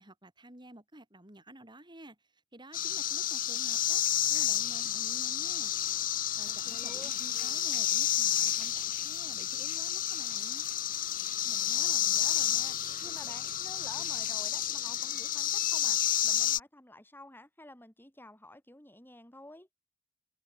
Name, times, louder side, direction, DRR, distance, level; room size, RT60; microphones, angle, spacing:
voice 1, 0.0-5.7 6.4-10.7, right 1 dB, 25° right, 5.6 m, -52 dB
sound 1, 2.7-16.6, left 12 dB, 45° left, 0.9 m, -30 dB
sound 2, 6.4-14.3, right 9 dB, 45° right, 5.5 m, -55 dB
voice 2, 6.5-7.3 11.4-19.7, left 1 dB, 10° left, 6.5 m, -51 dB
head